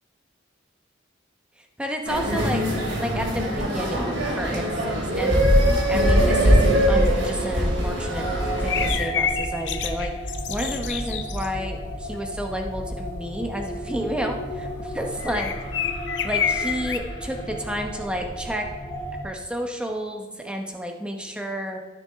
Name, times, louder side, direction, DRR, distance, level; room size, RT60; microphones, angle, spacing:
voice 1, 1.8-2.6 3.0-5.4 5.9-8.3 8.6-10.1 10.5-15.5 16.2-18.6 19.2-21.8, equal, 5° right, 3 dB, 0.9 m, -31 dB
sound 1, 2.1-8.9, equal, 80° right, 2.9 m, -21 dB
sound 2, 8.0-19.2, equal, 30° left, 2.2 m, -33 dB
sound 3, 8.6-11.5 15.2-17.0, left 8 dB, 70° left, 0.6 m, -28 dB
14.0 x 6.1 x 3.5 m, 1.5 s
head